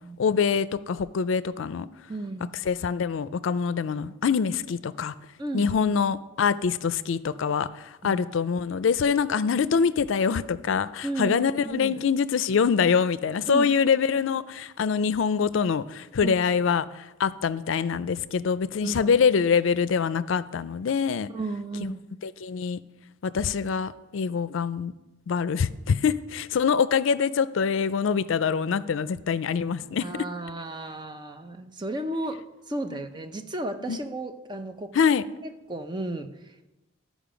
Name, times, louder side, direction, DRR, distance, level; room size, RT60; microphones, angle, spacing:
voice 1, 0.2-1.9 2.7-5.1 5.5-21.3 21.8-21.9 22.2-22.8 23.2-24.9 25.3-30.0 32.9-33.0 33.9-34.0 34.9-35.2, left 6 dB, 80° left, 15 dB, 0.4 m, -25 dB
voice 2, 2.1-2.5 5.4-6.0 8.0-8.2 11.0-11.9 13.5-13.7 16.2-16.4 18.8-19.1 21.3-22.0 30.0-35.0 35.4-36.7, right 2 dB, 25° right, 7 dB, 0.6 m, -34 dB
13.5 x 5.1 x 5.1 m, 1.0 s
head